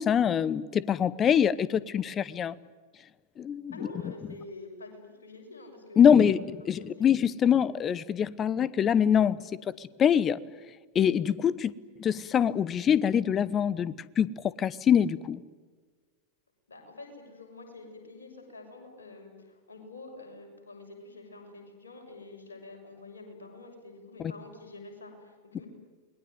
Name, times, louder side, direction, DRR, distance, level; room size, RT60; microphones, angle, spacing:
voice 1, 0.0-2.5 3.4-3.7 6.0-9.5 10.0-10.4 10.9-11.7 12.0-15.4, left 8 dB, 25° left, 0.9 m, -24 dB
voice 2, 3.7-6.9 7.4-7.6 16.7-25.7, left 2 dB, 70° left, 6.8 m, -47 dB
28.5 x 21.0 x 9.4 m
figure-of-eight pair, 90°, 0 cm